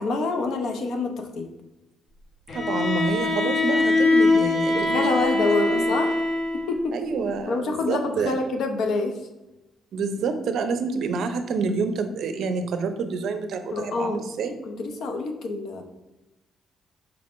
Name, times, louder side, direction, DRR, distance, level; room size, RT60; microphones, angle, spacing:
voice 1, 0.0-1.5 4.7-6.2 6.7-6.9 7.5-9.2 13.7-14.2 14.7-15.8, left 3 dB, 75° left, 5 dB, 0.6 m, -26 dB
Bowed string instrument, 2.5-6.8, left 3 dB, 55° left, 0.9 m, -22 dB
voice 2, 2.5-5.4 5.7-5.9 6.9-8.5 9.9-14.5, right 4 dB, 70° right, 8 dB, 0.4 m, -28 dB
4.6 x 3.5 x 2.5 m, 1.0 s
cardioid pair, 90°, 0 cm